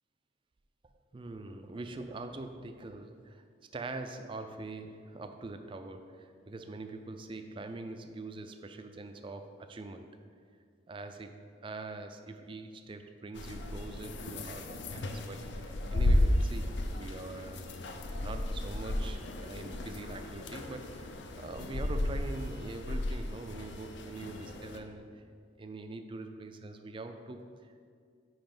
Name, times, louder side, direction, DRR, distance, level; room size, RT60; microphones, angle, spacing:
voice 1, 1.1-3.4 3.7-10.1 10.9-11.4 11.6-17.7 18.2-25.2 25.6-27.9, right 2 dB, 25° right, 7 dB, 0.3 m, -43 dB
sound 1, 13.4-24.8, left 1 dB, 60° left, 0.5 m, -34 dB
5.3 x 4.7 x 5.9 m, 2.1 s
head